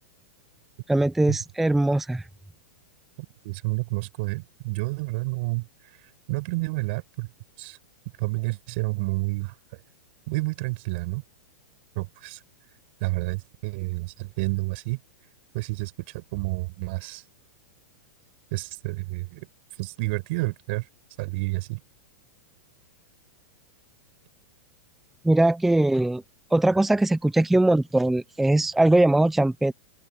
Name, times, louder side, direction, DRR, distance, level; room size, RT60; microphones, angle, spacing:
voice 1, 0.9-2.2 25.2-26.2 26.5-29.7, right 1 dB, 5° right, 0.4 m, -21 dB
voice 2, 3.4-5.7 6.3-7.3 7.6-7.8 8.2-9.5 10.3-11.2 12.0-12.4 13.0-15.0 15.5-17.2 18.5-19.5 19.8-20.9 21.2-21.8, right 24 dB, 45° right, 6.8 m, -29 dB
open air
supercardioid pair, 165°, 8 cm